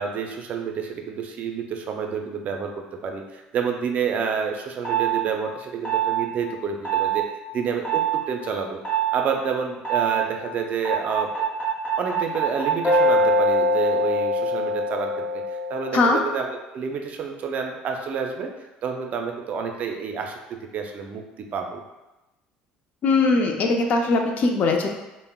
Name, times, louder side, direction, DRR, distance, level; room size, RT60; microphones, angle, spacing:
voice 1, 0.0-2.7 3.0-7.2 7.5-8.8 9.1-11.3 12.0-18.5 18.8-20.4 20.7-21.8, right 6 dB, 50° right, 3 dB, 0.4 m, -29 dB
sound 1, 4.8-5.2 5.8-6.2 6.8-7.2 7.8-8.2 8.8-9.2 9.8-10.2 10.8-15.9, right 2 dB, 30° left, 1.4 m, -23 dB
voice 2, 23.0-24.9, left 3 dB, 50° left, 3 dB, 0.4 m, -20 dB
3.4 x 2.0 x 2.2 m, 1.0 s
supercardioid pair, 95°, 3 cm